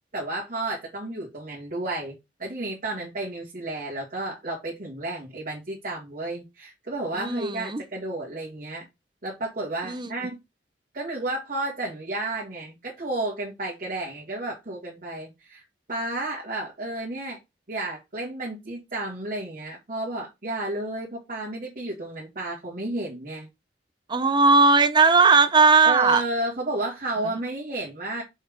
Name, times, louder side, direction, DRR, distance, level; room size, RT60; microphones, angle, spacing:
voice 1, 0.1-8.9 9.2-10.4 10.9-15.6 15.9-17.4 17.7-23.5 25.8-28.2, right 2 dB, 45° right, 1.8 m, -32 dB
voice 2, 7.2-7.8 9.8-10.1 24.1-26.2, right 4 dB, 25° right, 0.6 m, -18 dB
5.5 x 3.5 x 5.0 m
head